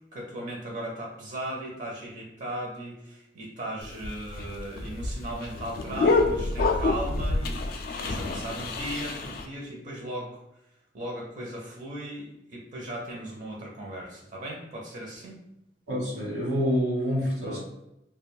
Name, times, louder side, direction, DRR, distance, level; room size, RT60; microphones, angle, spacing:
voice 1, 0.1-10.4 10.9-15.4 17.4-17.6, right 1 dB, 45° right, -2 dB, 0.6 m, -37 dB
sound 1, 3.8-9.5, left 3 dB, 55° left, 0.3 m, -27 dB
voice 2, 15.9-17.6, equal, 70° right, -4 dB, 1.1 m, -27 dB
2.3 x 2.2 x 3.3 m, 0.86 s
head